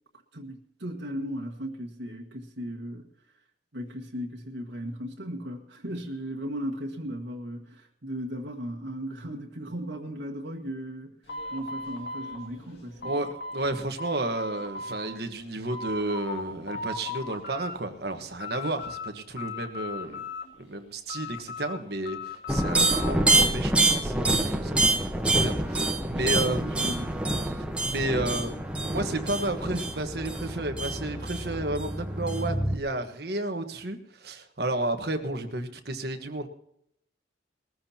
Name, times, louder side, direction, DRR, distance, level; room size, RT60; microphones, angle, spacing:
voice 1, 0.3-3.1 3.7-11.2 11.5-13.3 24.5-24.7 26.1-27.2, equal, 80° right, -1 dB, 1.7 m, -37 dB
sound 1, 11.3-13.7 14.0-15.1 15.5-16.4 16.7-17.8 18.1-19.1 19.4-20.6 21.1-23.2, left 3 dB, 60° left, 2.2 m, -37 dB
voice 2, 13.5-20.2 20.6-26.6 27.8-36.5, right 2 dB, 55° right, 6 dB, 1.4 m, -32 dB
sound 2, 22.5-32.8, right 2 dB, 5° right, 1.0 m, -26 dB
21.0 x 14.0 x 2.9 m, 0.73 s
head